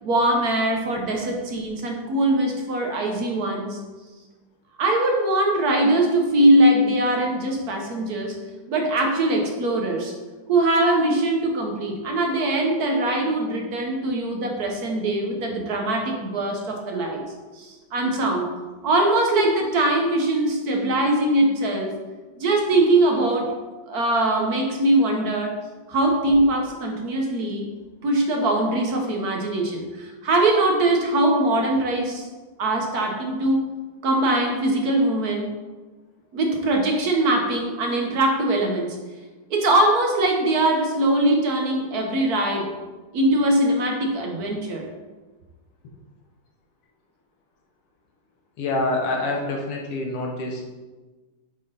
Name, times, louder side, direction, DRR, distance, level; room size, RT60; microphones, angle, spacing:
voice 1, 0.0-3.8 4.8-10.1 10.5-17.2 17.6-18.5 18.8-22.0 22.4-23.5 23.9-25.6 25.9-27.7 28.0-32.2 32.6-33.6 34.0-35.5 36.3-39.0 39.5-42.7 43.1-44.9, right 1 dB, 60° right, 1 dB, 1.1 m, -22 dB
voice 2, 48.6-50.7, left 2 dB, 85° left, 0 dB, 2.1 m, -26 dB
8.9 x 3.7 x 4.0 m, 1.3 s
omnidirectional pair, 2.4 m